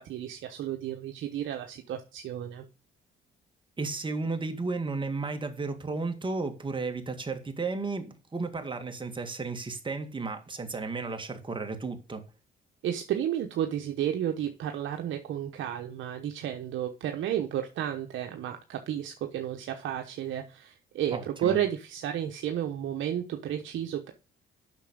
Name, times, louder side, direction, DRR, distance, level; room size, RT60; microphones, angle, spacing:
voice 1, 0.0-2.7 12.8-24.1, right 10 dB, 75° right, 1.0 m, -32 dB
voice 2, 3.8-12.2 21.1-21.6, right 3 dB, 25° right, 1.9 m, -33 dB
8.2 x 6.1 x 5.2 m
cardioid pair, 90°, 20 cm